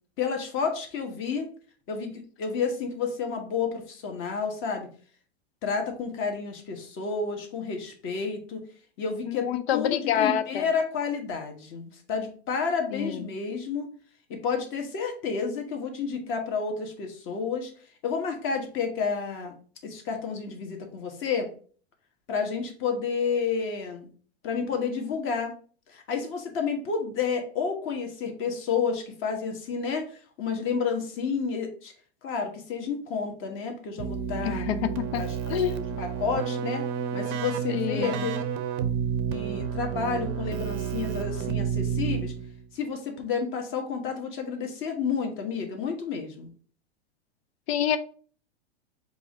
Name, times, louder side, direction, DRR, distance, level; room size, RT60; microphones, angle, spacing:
voice 1, 0.2-1.5 1.9-4.9 5.6-8.7 9.0-13.9 14.3-17.7 18.0-19.5 19.8-21.5 22.3-24.1 24.4-25.5 25.9-31.9 32.2-34.7 35.1-35.6 36.0-36.8 37.1-38.3 39.3-42.3 42.7-46.5, left 5 dB, 40° left, 3 dB, 1.2 m, -30 dB
voice 2, 9.3-10.7 12.9-13.4 34.4-36.0 37.7-38.2 47.7-48.0, left 10 dB, 75° left, 12 dB, 0.5 m, -28 dB
Keyboard (musical), 34.0-42.7, right 7 dB, 45° right, 0.6 m, -30 dB
4.7 x 2.5 x 4.2 m, 0.43 s
hypercardioid pair, 120°, 32 cm